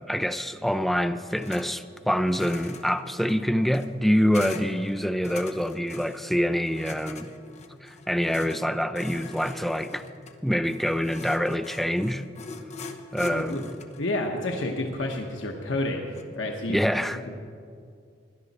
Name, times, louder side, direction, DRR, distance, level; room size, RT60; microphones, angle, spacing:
voice 1, 0.0-7.3 7.8-10.0 10.4-12.2 13.1-13.8 16.7-17.2, equal, ahead, 9 dB, 0.4 m, -26 dB
sound 1, 1.3-1.7 2.0-16.4, left 3 dB, 35° left, 0.9 m, -42 dB
voice 2, 13.3-13.6 14.0-16.0 16.4-16.8, left 2 dB, 90° left, 1 dB, 1.0 m, -29 dB
17.0 x 11.5 x 4.2 m, 2.3 s
head